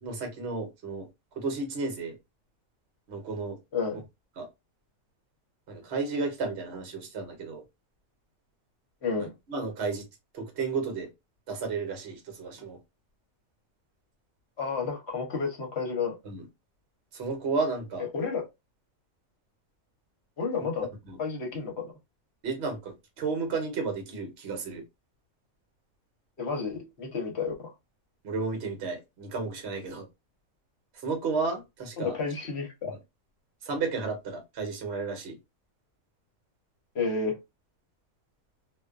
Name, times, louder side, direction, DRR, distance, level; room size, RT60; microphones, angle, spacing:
voice 1, 0.0-1.1 1.4-2.2 3.1-3.6 4.4-4.5 5.7-7.6 9.5-10.1 10.3-11.1 11.5-12.8 16.2-16.5 17.1-18.1 20.6-20.7 21.1-21.2 22.4-24.8 28.2-30.0 31.0-32.1 33.6-35.4, right 4 dB, 55° right, 1.0 m, -32 dB
voice 2, 14.6-16.2 18.1-18.5 20.4-20.9 21.2-21.9 26.4-27.7 32.0-32.9 36.9-37.4, left 5 dB, 55° left, 1.0 m, -31 dB
2.5 x 2.2 x 2.3 m
omnidirectional pair, 1.4 m